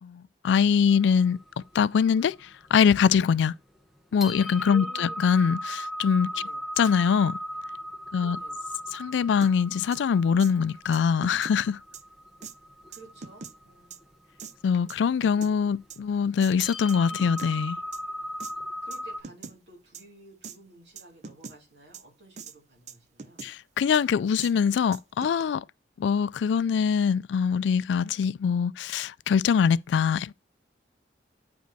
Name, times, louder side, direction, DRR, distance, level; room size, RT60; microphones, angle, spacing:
voice 1, 0.0-1.4 1.7-3.5 4.1-6.3 6.8-7.4 8.1-8.4 8.9-11.8 14.6-17.8 23.4-25.6 26.0-30.3, left 6 dB, 85° left, 0.3 m, -23 dB
sound 1, 0.9-3.2 3.7-3.8 4.2-19.2, equal, ahead, 0.9 m, -38 dB
voice 2, 4.6-5.4 6.3-6.7 8.1-8.6 8.9-9.1 12.9-14.0 18.5-23.5, right 2 dB, 75° right, 3.0 m, -52 dB
sound 2, 9.4-9.5 9.9-10.0 10.4-10.5 10.9-11.6 11.9-12.0 12.4-12.5 12.9-13.5 13.9-14.0 14.4-14.5 14.9-15.5 15.9-16.0 16.4-16.5 16.9-17.5 17.9-18.0 18.4-18.5 18.9-19.0 19.2-19.6 19.9-20.0 20.4-20.6 21.0-21.6 21.9-22.0 22.4-22.5 22.9-23.5 23.9-24.0 24.4-24.5 24.9-25.4, right 5 dB, 40° right, 0.5 m, -42 dB
9.0 x 5.2 x 2.7 m
head